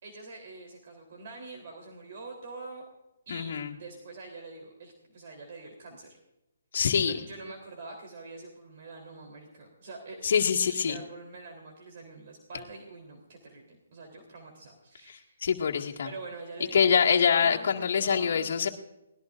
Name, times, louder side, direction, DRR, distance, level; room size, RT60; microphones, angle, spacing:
voice 1, 0.0-2.9 3.3-6.2 6.8-10.4 10.7-15.4 16.0-18.5, right 3 dB, 50° right, 2 dB, 3.7 m, -45 dB
voice 2, 3.3-3.7 6.7-7.2 10.2-11.0 15.4-16.1 16.7-18.7, left 7 dB, 60° left, 0 dB, 2.0 m, -25 dB
23.0 x 19.0 x 2.6 m, 0.92 s
hypercardioid pair, 160°, 0 cm